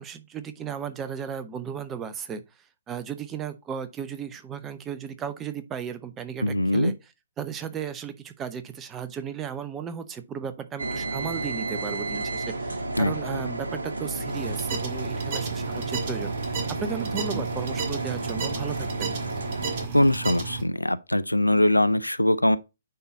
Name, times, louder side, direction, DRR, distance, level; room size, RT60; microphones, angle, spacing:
voice 1, 0.0-19.2, right 7 dB, 15° right, 0.8 m, -35 dB
voice 2, 6.4-6.9 13.0-13.1 19.9-22.6, left 1 dB, 85° left, 0.5 m, -22 dB
sound 1, 10.8-19.9, right 2 dB, 65° right, 1.5 m, -32 dB
sound 2, 14.3-20.6, right 5 dB, 35° right, 1.8 m, -33 dB
9.3 x 4.0 x 3.9 m
figure-of-eight pair, 130°, 0 cm